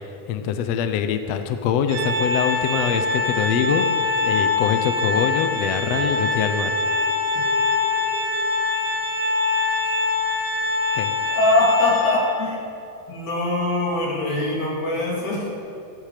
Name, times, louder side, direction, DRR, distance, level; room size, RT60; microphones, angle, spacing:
voice 1, 0.3-6.8 10.9-11.1, left 8 dB, 85° left, 8 dB, 1.4 m, -24 dB
Organ, 1.9-12.6, left 3 dB, 75° right, 2.8 m, -23 dB
sound 1, 5.8-7.1 7.4-8.3 9.8-9.9 10.5-10.7, left 1 dB, 10° left, 2.5 m, -39 dB
voice 2, 11.3-12.6 13.1-15.5, left 2 dB, 55° left, -4 dB, 4.4 m, -22 dB
16.0 x 13.5 x 5.0 m, 2.6 s
omnidirectional pair, 4.0 m